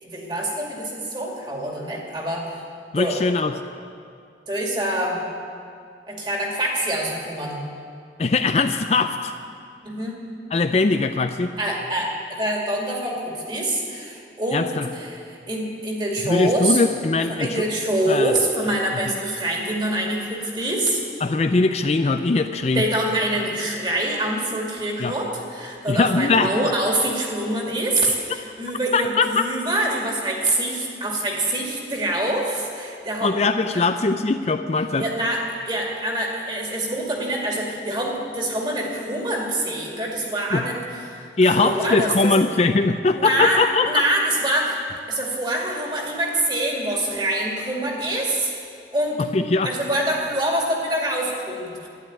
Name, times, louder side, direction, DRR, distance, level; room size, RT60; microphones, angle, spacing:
voice 1, 0.0-2.6 3.0-3.2 4.5-5.2 6.1-7.6 9.8-10.2 11.6-14.7 14.9-16.8 17.3-21.0 22.7-33.3 33.7-33.9 35.0-40.8 41.1-42.3 43.2-43.6 43.9-44.8 45.1-48.5 48.9-49.2 49.6-51.9, right 1 dB, 25° right, -1 dB, 2.3 m, -25 dB
voice 2, 2.9-3.5 8.2-9.3 10.5-11.5 14.5-14.9 16.2-17.6 18.1-18.3 21.2-22.8 25.0-25.1 25.9-26.5 28.0-28.1 28.9-29.4 33.2-35.1 40.5-40.6 41.4-44.0 49.3-49.7, left 3 dB, 35° left, 8 dB, 0.4 m, -21 dB
12.0 x 10.5 x 9.2 m, 2.4 s
head